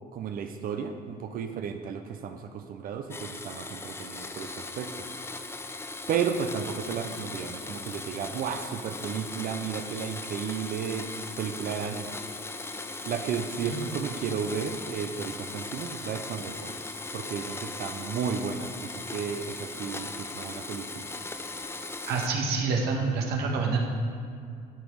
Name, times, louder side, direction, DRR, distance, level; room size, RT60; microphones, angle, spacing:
voice 1, 0.1-5.1 6.1-11.1 11.4-12.2 13.0-16.7 17.1-21.1, right 7 dB, 60° right, 6 dB, 0.6 m, -33 dB
Domestic sounds home sounds, 3.1-22.3, left 3 dB, 15° left, 0.5 m, -38 dB
voice 2, 22.1-23.8, right 4 dB, 75° right, 1 dB, 1.5 m, -27 dB
12.5 x 5.2 x 4.7 m, 2.3 s
cardioid pair, 110°, 17 cm